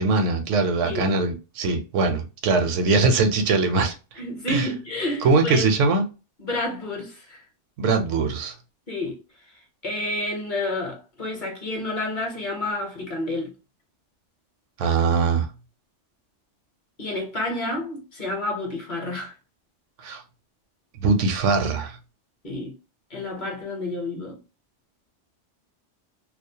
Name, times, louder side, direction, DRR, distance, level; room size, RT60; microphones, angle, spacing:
voice 1, 0.0-3.9 4.5-4.7 5.2-6.0 7.8-8.5 14.8-15.5 20.0-20.2 21.0-22.0, right 3 dB, 85° right, 0.9 m, -21 dB
voice 2, 4.2-5.7 6.4-7.4 8.9-9.2 9.5-13.5 17.0-19.3 22.4-22.7 23.1-24.4, left 2 dB, 45° left, 0.8 m, -30 dB
2.4 x 2.0 x 2.6 m
omnidirectional pair, 1.2 m